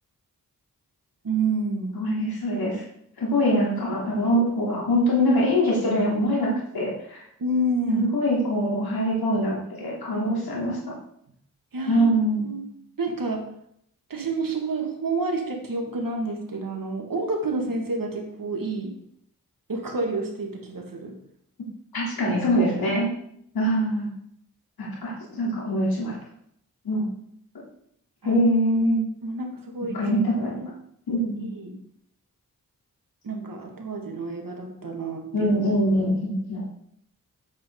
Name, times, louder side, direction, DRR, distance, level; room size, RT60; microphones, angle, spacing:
voice 1, 1.2-2.0 7.4-8.1 11.7-12.1 12.4-12.7 13.0-13.4 14.1-18.9 19.7-21.1 25.4-25.5 28.2-28.3 29.2-30.0 31.4-31.7 33.2-35.5, right 2 dB, 65° right, 2 dB, 2.1 m, -29 dB
voice 2, 1.9-2.8 3.2-7.2 7.9-10.9 11.9-12.5 21.9-23.1 23.5-24.1 24.8-26.1 26.8-27.1 28.2-29.0 29.9-30.7 31.1-31.4 35.3-36.6, equal, 80° left, -4 dB, 3.3 m, -23 dB
8.5 x 7.8 x 3.9 m, 0.71 s
cardioid pair, 45°, 36 cm